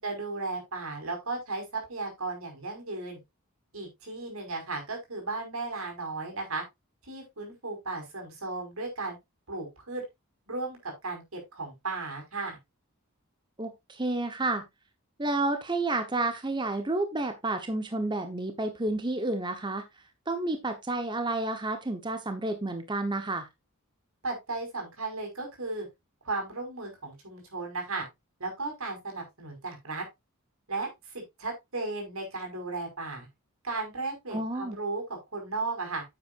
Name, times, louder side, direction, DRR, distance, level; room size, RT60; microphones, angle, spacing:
voice 1, 0.0-3.2 3.7-6.6 7.0-9.2 9.5-10.0 10.5-12.6 24.2-25.9 26.2-28.1 28.4-30.1 30.7-33.3 33.6-36.0, right 3 dB, 85° right, 3 dB, 5.4 m, -35 dB
voice 2, 13.6-14.6 15.2-19.8 20.3-23.5 34.3-34.8, right 2 dB, 20° right, 7 dB, 1.1 m, -30 dB
9.9 x 8.5 x 2.6 m, 0.20 s
head